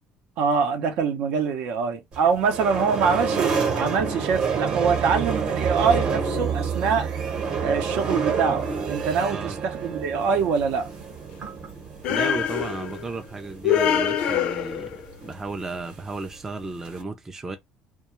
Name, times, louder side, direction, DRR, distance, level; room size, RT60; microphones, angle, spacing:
voice 1, 0.4-7.1 7.6-10.9, right 5 dB, 70° right, 0.7 m, -24 dB
sound 1, 2.1-17.0, right 5 dB, 40° right, 0.9 m, -29 dB
sound 2, 12.0-13.1 13.6-15.0, left 9 dB, 60° left, 0.4 m, -24 dB
voice 2, 12.1-17.6, right 3 dB, 15° right, 0.4 m, -34 dB
2.3 x 2.2 x 3.0 m
cardioid pair, 140°, 2 cm